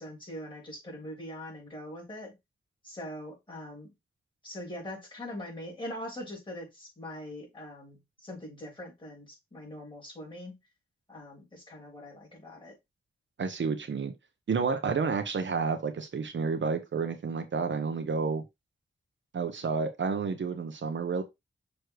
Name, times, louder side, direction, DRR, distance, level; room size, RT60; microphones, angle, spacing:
voice 1, 0.0-2.4 2.8-3.9 4.4-10.6 11.1-12.8, left 1 dB, 20° left, 3.4 m, -42 dB
voice 2, 13.4-14.1 14.5-18.4 19.3-21.2, right 5 dB, 60° right, 0.9 m, -30 dB
6.5 x 3.2 x 4.7 m
wide cardioid pair, 150°, 21 cm